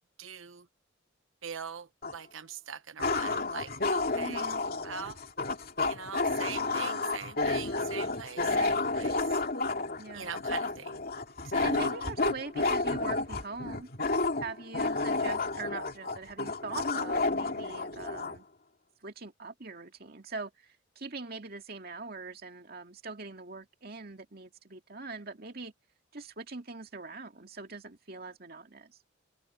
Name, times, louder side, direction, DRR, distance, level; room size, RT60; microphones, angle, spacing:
voice 1, 0.2-0.6 1.4-4.4 4.8-5.2 5.9-9.2 10.1-11.0 11.5-12.0, right 7 dB, 80° right, 1.1 m, -42 dB
sound 1, 2.0-2.1 3.0-18.4, left 3 dB, 50° left, 2.6 m, -31 dB
voice 2, 4.1-4.6 8.4-8.8 10.0-10.3 11.6-13.9 14.4-18.5 19.0-25.7 26.1-29.0, right 3 dB, 50° right, 2.2 m, -42 dB
head